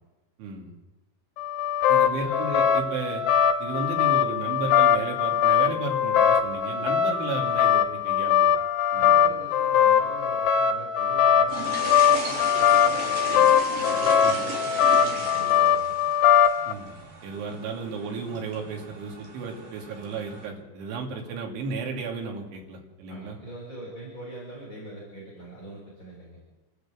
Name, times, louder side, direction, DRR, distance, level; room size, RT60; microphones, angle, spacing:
voice 1, 0.4-0.7 1.9-3.2 3.6-8.6 8.9-9.3 14.2-14.4 16.7-17.0 17.2-23.4, right 4 dB, 90° right, 1 dB, 5.1 m, -34 dB
sound 1, 1.4-16.7, left 8 dB, 70° left, 3.1 m, -21 dB
voice 2, 1.9-2.4 8.9-16.0 23.1-26.4, right 1 dB, 25° left, -6 dB, 6.5 m, -42 dB
sound 2, 11.5-20.5, right 3 dB, 50° right, 5.0 m, -37 dB
28.5 x 13.0 x 7.7 m, 1.1 s
omnidirectional pair, 5.2 m